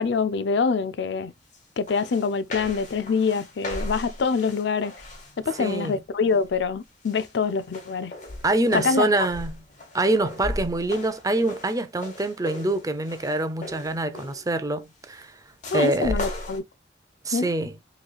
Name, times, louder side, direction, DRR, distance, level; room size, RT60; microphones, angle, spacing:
voice 1, 0.0-1.3 1.8-4.9 5.4-8.1 8.7-9.1 15.7-16.6 17.3-17.5, left 5 dB, 70° left, 0.4 m, -25 dB
sound 1, 1.5-1.6 1.9-5.9 6.3-6.7 7.0-14.5 15.6-16.6, left 1 dB, 45° left, 1.6 m, -37 dB
voice 2, 5.6-5.9 8.4-9.6 9.9-15.4 15.7-16.2 17.2-17.8, right 2 dB, 20° right, 0.6 m, -25 dB
6.2 x 3.2 x 2.3 m
head